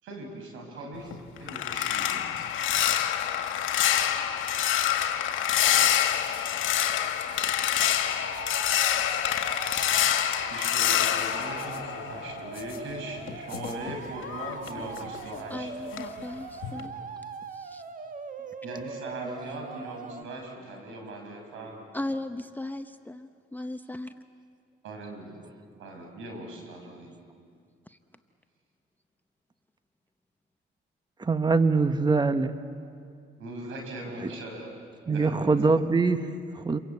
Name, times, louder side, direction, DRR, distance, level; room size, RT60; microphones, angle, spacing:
voice 1, 0.0-2.3 10.5-15.9 18.6-21.9 24.8-25.4 25.8-27.2 33.4-34.7 35.1-35.8, right 1 dB, 85° right, 2 dB, 6.3 m, -40 dB
sound 1, 0.9-12.6 12.9-15.6 15.9-16.2 16.6-16.9, left 10 dB, 80° left, 1.8 m, -27 dB
sound 2, 5.9-6.5 6.8-7.8 8.3-10.0 10.6-10.9 11.6-11.8 12.5-12.8 13.5-13.8 14.6-15.0 15.8-16.7 17.3-17.9, left 6 dB, 50° left, 5.8 m, -51 dB
sound 3, 8.1-20.2, right 5 dB, 40° right, 1.3 m, -41 dB
voice 2, 15.5-16.9 17.5-17.8 21.9-24.1 27.9-28.0, left 1 dB, 10° left, 8 dB, 0.8 m, -37 dB
voice 3, 31.2-32.6 34.2-34.3 35.1-36.8, right 4 dB, 20° right, 10 dB, 1.1 m, -24 dB
28.5 x 23.0 x 8.5 m, 2.3 s
cardioid pair, 90°, 20 cm